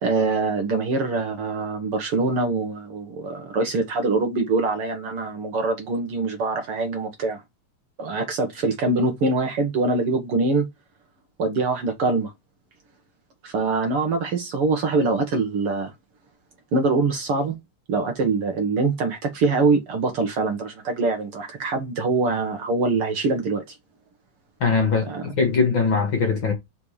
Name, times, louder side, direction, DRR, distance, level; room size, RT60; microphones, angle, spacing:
voice 1, 0.0-7.4 8.0-10.7 11.4-12.3 13.4-15.9 16.7-17.6 17.9-23.8 25.1-25.2, right 3 dB, 55° right, 1.9 m, -24 dB
voice 2, 24.6-26.5, left 5 dB, 45° left, 2.2 m, -21 dB
5.6 x 4.3 x 4.9 m
omnidirectional pair, 3.3 m